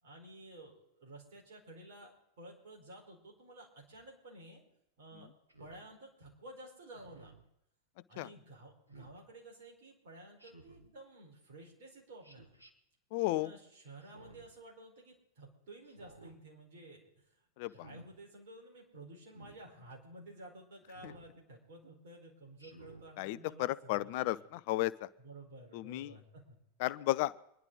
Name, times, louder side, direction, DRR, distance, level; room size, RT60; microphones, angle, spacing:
voice 1, 0.0-4.6 5.0-5.3 5.6-7.3 8.1-12.6 13.3-17.4 17.7-24.4 25.2-26.6, right 1 dB, 55° right, 0 dB, 4.4 m, -53 dB
Speech synthesizer, 5.5-5.8 6.9-7.4 8.9-9.2 10.4-10.9 12.2-12.7 14.0-14.5 15.8-16.4 17.7-18.1 19.3-19.6 20.9-21.3 22.6-23.1, right 2 dB, 85° right, 1.6 m, -55 dB
voice 2, 13.1-13.5 17.6-17.9 21.0-21.1 23.2-25.1 25.7-26.1 26.8-27.3, left 17 dB, 50° left, 18 dB, 0.4 m, -34 dB
25.0 x 10.5 x 4.0 m, 0.80 s
figure-of-eight pair, 90°, 0 cm